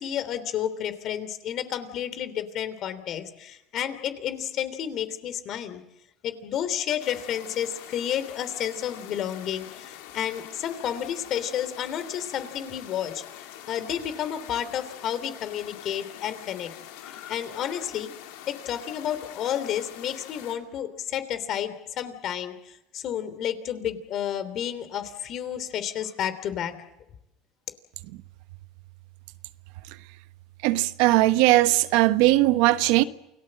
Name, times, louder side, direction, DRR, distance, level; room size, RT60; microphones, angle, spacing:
voice 1, 0.0-5.8 6.2-13.2 13.7-16.7 17.0-18.1 18.5-26.7, left 10 dB, 55° left, 3.2 m, -31 dB
sound 1, 7.0-20.6, left 11 dB, 85° left, 3.1 m, -44 dB
voice 2, 30.6-33.0, right 17 dB, 80° right, 1.1 m, -19 dB
29.0 x 18.5 x 7.7 m
supercardioid pair, 100°, 0 cm